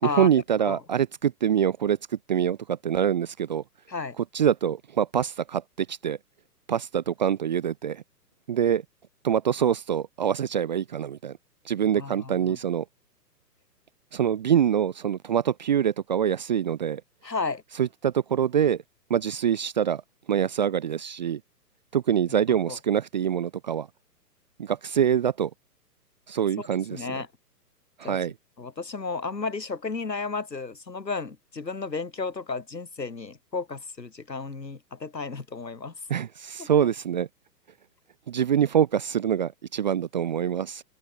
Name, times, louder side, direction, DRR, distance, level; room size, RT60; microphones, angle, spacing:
voice 1, 0.0-2.0 2.3-3.6 4.3-6.2 6.7-8.0 8.5-8.8 9.2-11.4 11.7-12.8 14.1-17.0 17.8-18.8 19.1-20.0 20.3-21.4 21.9-23.9 24.6-25.5 26.3-27.2 28.0-28.3 36.1-37.3 38.3-40.8, right 9 dB, 30° right, 0.5 m, -25 dB
voice 2, 11.9-12.6 17.2-17.6 22.7-22.8 26.6-27.3 28.0-28.2 28.6-35.9 36.6-36.7, left 4 dB, 85° left, 6.7 m, -33 dB
open air
figure-of-eight pair, 130°, 49 cm